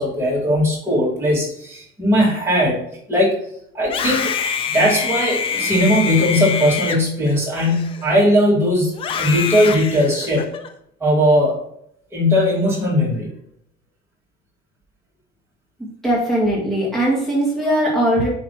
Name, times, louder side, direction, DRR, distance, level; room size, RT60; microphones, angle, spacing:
voice 1, 0.0-2.8 3.1-3.3 3.7-4.3 4.7-10.5 11.0-11.6 12.1-13.3, equal, 15° right, -5 dB, 2.1 m, -18 dB
Screaming, 3.8-8.3 8.9-10.7, left 7 dB, 30° left, 0.5 m, -25 dB
voice 2, 16.0-18.3, right 1 dB, ahead, -6 dB, 1.8 m, -19 dB
5.1 x 3.8 x 5.6 m, 0.70 s
cardioid pair, 170°, 18 cm